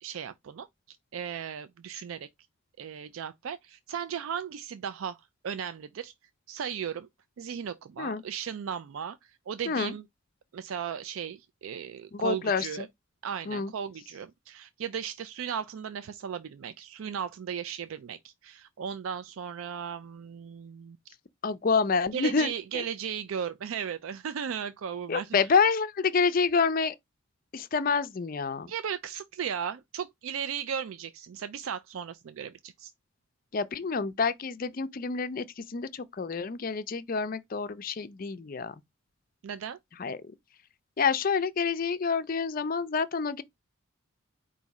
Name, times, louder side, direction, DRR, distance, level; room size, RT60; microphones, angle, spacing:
voice 1, 0.0-2.3 2.8-6.1 6.5-7.1 7.4-10.0 10.5-12.9 13.2-21.0 22.1-25.4 28.7-32.9 39.4-39.8, right 8 dB, 75° right, 0.4 m, -36 dB
voice 2, 12.1-12.9 13.5-13.7 21.4-22.8 25.1-26.9 27.5-28.7 33.5-38.7 40.0-40.2 41.0-43.4, left 5 dB, 40° left, 0.4 m, -28 dB
4.8 x 2.6 x 4.0 m
head